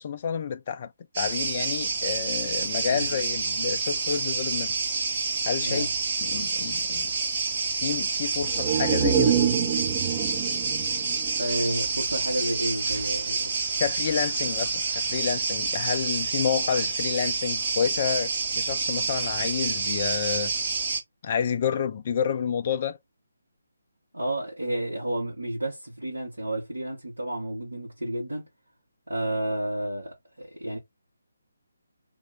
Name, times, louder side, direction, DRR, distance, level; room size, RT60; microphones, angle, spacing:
voice 1, 0.0-4.7 5.4-5.9 6.2-7.1 7.7-9.4 13.8-20.5 21.2-23.0, left 7 dB, 30° left, 0.3 m, -29 dB
sound 1, 1.1-21.0, right 4 dB, 35° right, 1.5 m, -28 dB
sound 2, 8.4-12.1 12.5-12.6, right 7 dB, 20° right, 0.5 m, -26 dB
voice 2, 11.4-13.5 24.1-28.4 29.1-30.8, right 1 dB, 70° right, 1.6 m, -31 dB
3.0 x 2.7 x 4.0 m
figure-of-eight pair, 145°, 0 cm